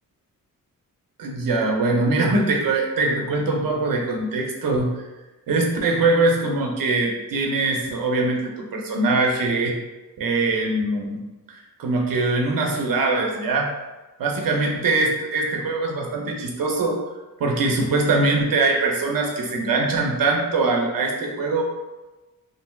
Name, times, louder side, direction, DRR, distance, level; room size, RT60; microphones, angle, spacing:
voice 1, 1.2-5.0 5.5-9.7 10.2-11.2 11.5-13.7 14.2-17.0 17.4-21.6, right 3 dB, 75° right, 0 dB, 0.6 m, -22 dB
3.3 x 2.5 x 2.2 m, 1.1 s
wide cardioid pair, 140°, 34 cm